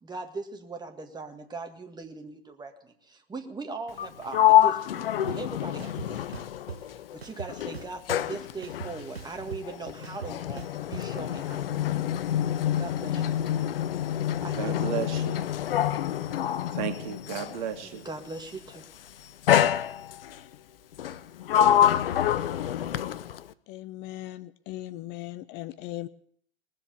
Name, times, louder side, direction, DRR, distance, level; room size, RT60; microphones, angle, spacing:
voice 1, 0.0-6.4 7.1-10.6 10.9-11.9 12.8-13.6 14.4-15.1 17.8-18.9, right 3 dB, 15° right, 5 dB, 1.9 m, -40 dB
Sliding door, 3.9-7.2 7.5-17.6 18.5-18.8 19.5-20.4 21.0-23.5, left 11 dB, 70° left, 0.8 m, -26 dB
sound 1, 5.3-5.4 5.8-6.8 7.2-8.3 8.6-11.0, right 7 dB, 90° right, 0.9 m, -40 dB
voice 2, 14.6-15.4 16.7-18.1, right 8 dB, 50° right, 7 dB, 2.1 m, -33 dB
voice 3, 23.7-26.1, left 15 dB, 35° left, 15 dB, 0.6 m, -38 dB
19.5 x 7.6 x 9.3 m, 0.63 s
figure-of-eight pair, 95°, 30 cm